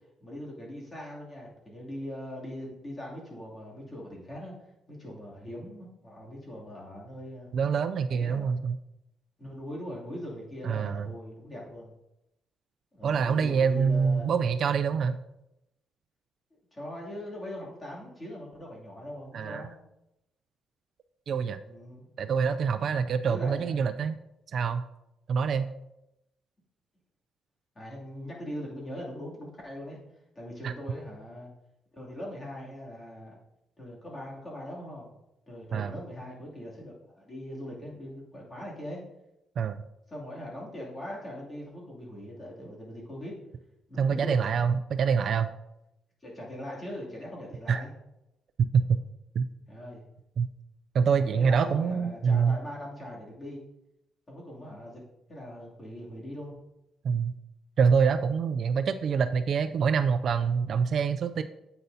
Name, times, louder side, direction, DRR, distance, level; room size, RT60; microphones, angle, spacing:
voice 1, 0.2-4.5 4.9-7.5 8.1-8.5 9.4-11.9 12.9-14.3 16.7-19.7 21.7-22.1 23.2-23.7 27.7-30.0 30.3-31.5 31.9-33.4 33.8-35.1 35.5-39.0 40.1-43.3 43.9-44.4 46.2-47.9 49.7-50.1 51.1-53.6 54.3-55.0 55.3-56.6, equal, 20° left, -4 dB, 2.7 m, -41 dB
voice 2, 7.5-8.8 10.6-11.1 13.0-15.2 19.3-19.7 21.3-21.6 22.2-24.2 24.5-24.8 25.3-25.7 30.6-30.7 35.7-35.9 39.6-39.8 44.0-45.5 47.7-47.8 48.7-49.0 49.4-49.5 50.4-50.5 50.9-52.6 57.0-57.3 57.8-61.4, right 6 dB, 55° right, 10 dB, 0.4 m, -25 dB
9.5 x 8.0 x 2.7 m, 0.88 s
cardioid pair, 130°, 0 cm